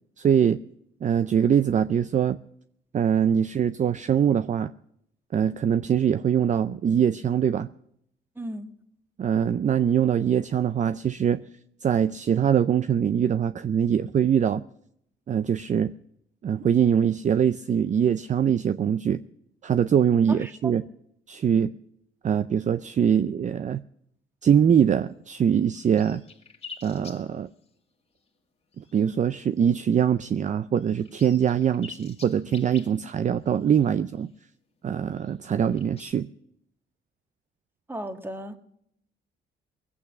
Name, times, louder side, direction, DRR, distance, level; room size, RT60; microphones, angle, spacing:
voice 1, 0.2-0.6 1.0-2.4 2.9-4.7 5.3-7.7 9.2-11.4 11.8-14.6 15.3-15.9 16.4-19.2 19.6-20.8 21.3-21.7 22.2-23.8 24.4-26.2 26.8-27.5 28.8-34.3 34.8-36.3, right 8 dB, 40° right, 13 dB, 0.5 m, -23 dB
voice 2, 8.3-8.7 20.3-20.7 37.9-38.6, right 1 dB, 10° right, 8 dB, 1.5 m, -35 dB
sound 1, 25.3-25.4 25.6-27.8 28.2-28.3 28.7-29.2 29.6-29.8 30.2-30.3 30.8-34.4 35.1-36.1, left 5 dB, 30° left, 2.0 m, -47 dB
21.0 x 8.6 x 6.1 m, 0.73 s
cardioid pair, 90°, 20 cm